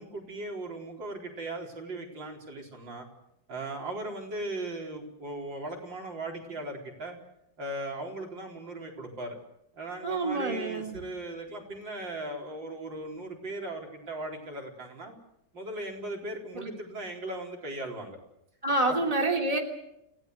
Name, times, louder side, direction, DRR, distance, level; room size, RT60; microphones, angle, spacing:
voice 1, 0.0-3.1 3.5-7.2 7.6-9.4 9.7-15.1 15.5-18.2 18.9-19.0, right 2 dB, 85° right, 1 dB, 4.9 m, -38 dB
voice 2, 10.0-11.0 16.5-16.7 18.6-19.6, right 2 dB, 20° right, 2 dB, 3.3 m, -27 dB
29.5 x 17.0 x 8.0 m, 0.81 s
omnidirectional pair, 2.0 m